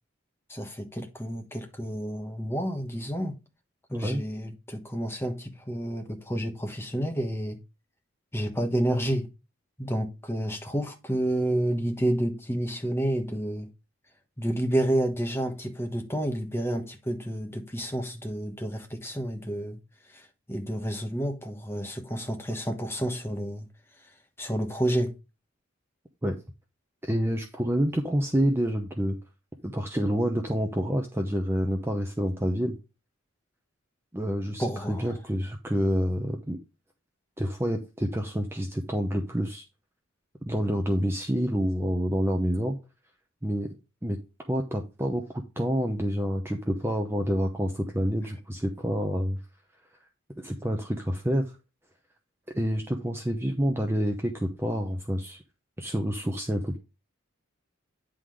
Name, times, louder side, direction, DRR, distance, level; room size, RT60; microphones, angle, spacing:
voice 1, 0.5-3.4 3.9-7.6 8.3-9.3 9.8-13.7 14.4-19.8 20.1-23.7 24.4-25.1 34.6-35.1, right 1 dB, 10° left, 1.3 m, -30 dB
voice 2, 3.9-4.2 26.2-26.4 27.0-29.2 29.6-32.8 34.1-36.6 37.4-39.6 40.4-42.8 43.4-43.7 44.0-44.2 44.5-49.4 50.4-51.5 52.5-55.4 55.8-56.8, equal, 10° right, 0.7 m, -28 dB
9.7 x 3.8 x 4.8 m
head